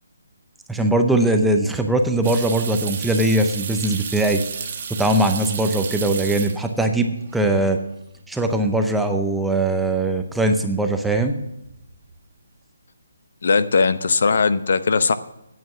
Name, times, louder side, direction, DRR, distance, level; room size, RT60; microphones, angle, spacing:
voice 1, 0.7-4.4 4.9-7.8 8.3-11.4, right 2 dB, ahead, 4 dB, 0.6 m, -20 dB
sound 1, 2.2-6.9 7.2-7.8 8.1-8.2 10.9-11.3 11.6-12.1, right 6 dB, 35° right, 1.5 m, -32 dB
voice 2, 13.4-15.1, left 4 dB, 55° left, 14 dB, 0.7 m, -19 dB
9.4 x 8.5 x 7.0 m, 0.88 s
hypercardioid pair, 170°, 0 cm